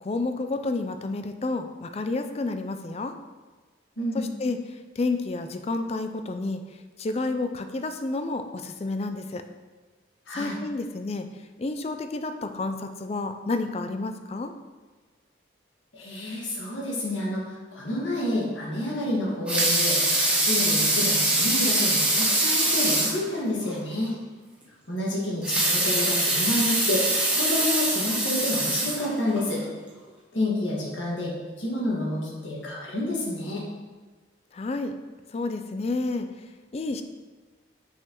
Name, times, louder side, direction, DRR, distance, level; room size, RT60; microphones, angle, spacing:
voice 1, 0.0-3.2 4.1-4.6 5.0-6.6 7.0-9.4 10.3-11.3 11.6-14.5 34.5-34.9 35.3-36.3 36.7-37.0, left 3 dB, 30° left, 8 dB, 0.3 m, -30 dB
voice 2, 4.0-4.3 10.3-10.6 15.9-24.1 24.9-29.6 30.3-33.6, left 1 dB, 75° left, -5 dB, 1.8 m, -29 dB
Water tap faucet / Sink (filling or washing) / Liquid, 19.3-23.2 23.7-23.8 24.1-24.2 25.3-29.4 30.0-30.1, right 1 dB, 5° right, 0.8 m, -23 dB
5.8 x 5.6 x 3.0 m, 1.4 s
head